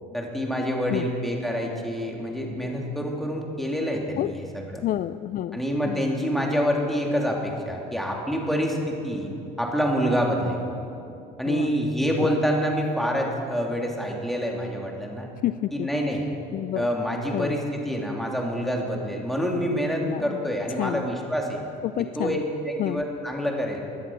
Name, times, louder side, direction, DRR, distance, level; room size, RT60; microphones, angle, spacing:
voice 1, 0.1-4.4 4.7-4.8 5.5-9.3 9.6-10.6 11.4-15.3 15.7-16.2 16.7-21.6 22.2-23.8, equal, ahead, 0 dB, 3.0 m, -27 dB
voice 2, 4.8-6.0 11.5-11.7 12.2-12.3 15.4-15.9 16.5-16.9 17.3-17.5 20.0-20.4 20.8-21.1 21.8-22.4 22.8-23.0, left 13 dB, 45° left, 14 dB, 0.4 m, -29 dB
17.5 x 10.5 x 6.2 m, 2.7 s
supercardioid pair, 80°, 19 cm